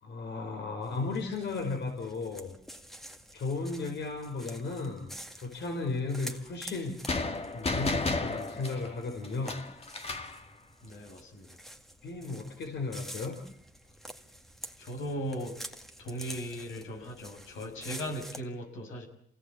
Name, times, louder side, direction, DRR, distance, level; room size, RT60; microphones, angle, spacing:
voice 1, 0.0-2.5 3.3-5.1 5.4-7.0 7.5-9.6 12.0-13.4, left 3 dB, 60° left, 2 dB, 5.1 m, -35 dB
sound 1, 0.8-18.4, equal, ahead, 2.1 m, -48 dB
sound 2, 7.1-10.4, left 3 dB, 30° left, 2.2 m, -33 dB
voice 2, 10.8-11.6 14.8-15.6 16.0-19.1, equal, 80° left, 3 dB, 6.9 m, -38 dB
27.5 x 18.0 x 8.6 m, 0.65 s
cardioid pair, 90°, 20 cm